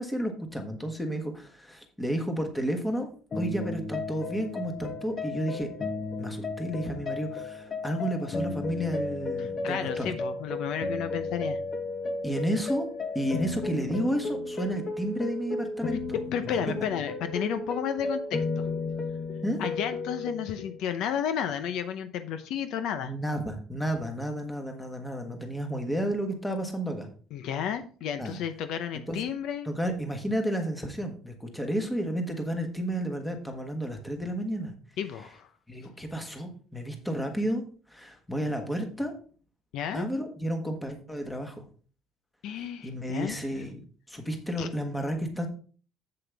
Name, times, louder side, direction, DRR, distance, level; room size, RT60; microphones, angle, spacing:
voice 1, 0.0-3.1 3.3-5.7 6.2-10.2 12.2-12.9 13.1-16.0 16.4-16.8 19.4-19.6 23.0-27.1 28.2-28.4 28.9-29.2 29.6-34.7 35.7-37.6 37.9-39.1 39.9-41.6 42.8-43.8 44.1-45.5, equal, 5° left, 5 dB, 1.4 m, -31 dB
sound 1, 3.3-20.8, left 3 dB, 30° left, 1.0 m, -34 dB
voice 2, 9.4-11.6 16.3-18.7 19.6-23.1 27.3-29.7 35.0-35.5 39.7-40.1 42.4-43.4 44.6-44.7, left 8 dB, 65° left, 10 dB, 0.7 m, -32 dB
7.8 x 7.7 x 3.4 m, 0.40 s
cardioid pair, 155°, 0 cm